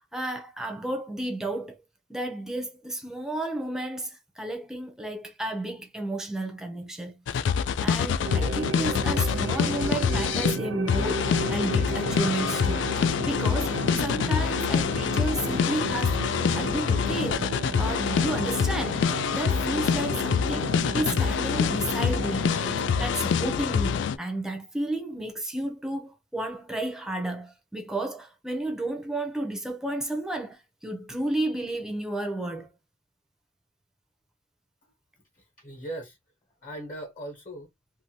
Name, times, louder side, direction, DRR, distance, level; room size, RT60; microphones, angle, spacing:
voice 1, 0.1-1.8 2.1-7.1 7.5-16.2 16.5-17.5 17.8-32.7, right 1 dB, 5° right, 0.6 m, -32 dB
sound 1, 7.3-10.6 10.9-24.2, left 7 dB, 70° left, 0.3 m, -26 dB
sound 2, 8.2-23.1, right 3 dB, 65° right, 0.5 m, -34 dB
voice 2, 35.2-36.2 36.6-37.7, right 1 dB, 45° left, 1.1 m, -39 dB
2.7 x 2.6 x 2.8 m
head